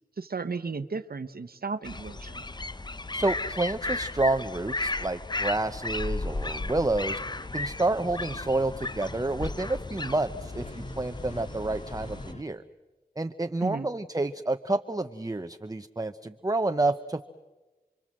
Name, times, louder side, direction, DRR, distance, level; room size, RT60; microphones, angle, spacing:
voice 1, 0.2-2.4 13.6-13.9, right 4 dB, 65° right, 11 dB, 1.1 m, -34 dB
sound 1, 1.8-12.3, left 2 dB, 25° left, 0.8 m, -35 dB
voice 2, 3.1-7.2 7.5-12.6 13.2-17.3, right 2 dB, 20° right, 10 dB, 0.8 m, -29 dB
sound 2, 6.2-12.4, left 1 dB, 40° left, 2.4 m, -45 dB
30.0 x 23.5 x 7.6 m, 1.2 s
wide cardioid pair, 50°, 17 cm